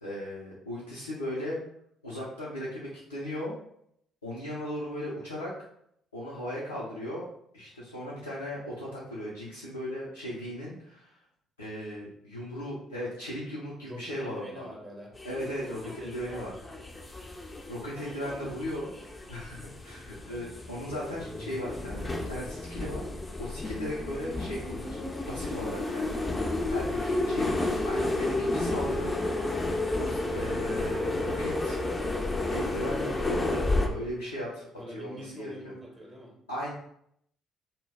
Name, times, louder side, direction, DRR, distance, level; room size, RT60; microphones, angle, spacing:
voice 1, 0.0-1.6 2.0-3.5 4.2-5.6 6.1-7.3 7.5-11.1 11.6-14.7 15.2-16.5 17.7-18.9 19.3-23.0 23.4-26.4 26.7-27.6 27.9-29.1 30.0-31.8 32.5-35.7 36.5-36.7, left 1 dB, 85° left, -7 dB, 0.4 m, -37 dB
voice 2, 13.8-15.1 15.6-16.6 18.1-18.6 34.8-36.4, equal, 25° right, -1 dB, 0.8 m, -45 dB
sound 1, 15.2-33.9, left 2 dB, 20° left, 0.4 m, -32 dB
2.2 x 2.0 x 3.3 m, 0.72 s
figure-of-eight pair, 45°, 0 cm